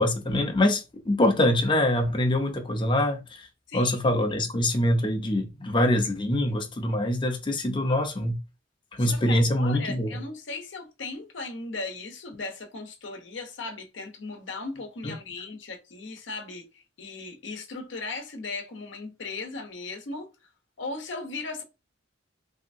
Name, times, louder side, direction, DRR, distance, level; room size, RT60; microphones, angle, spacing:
voice 1, 0.0-3.5 3.7-8.4 8.9-10.2 15.0-15.1, left 1 dB, 25° left, 0.6 m, -24 dB
voice 2, 3.7-4.0 4.3-4.4 9.0-20.3 20.8-21.6, left 3 dB, 75° left, 0.8 m, -37 dB
3.3 x 2.8 x 2.6 m
head